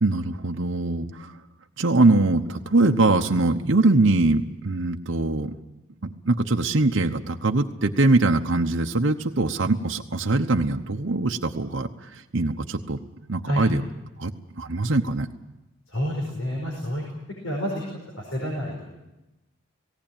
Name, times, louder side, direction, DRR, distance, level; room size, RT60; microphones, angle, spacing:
voice 1, 0.0-1.4 1.8-5.5 6.0-13.0 13.3-13.8 14.2-15.3, right 2 dB, 60° right, 3 dB, 0.9 m, -22 dB
voice 2, 15.9-17.0 17.4-17.8 18.2-19.0, equal, 80° left, -1 dB, 5.0 m, -28 dB
18.0 x 18.0 x 8.9 m, 1.0 s
head